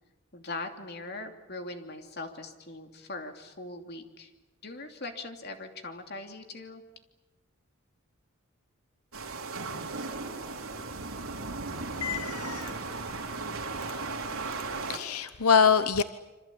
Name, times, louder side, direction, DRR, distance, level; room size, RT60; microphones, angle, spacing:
voice 1, 0.3-4.3 4.6-6.8, left 2 dB, 45° left, 4 dB, 3.0 m, -40 dB
sound 1, 9.1-15.0, right 3 dB, 80° right, 3.8 m, -36 dB
voice 2, 12.0-12.7 14.9-16.0, left 6 dB, 90° left, 12 dB, 0.9 m, -24 dB
27.0 x 25.5 x 8.6 m, 1.1 s
head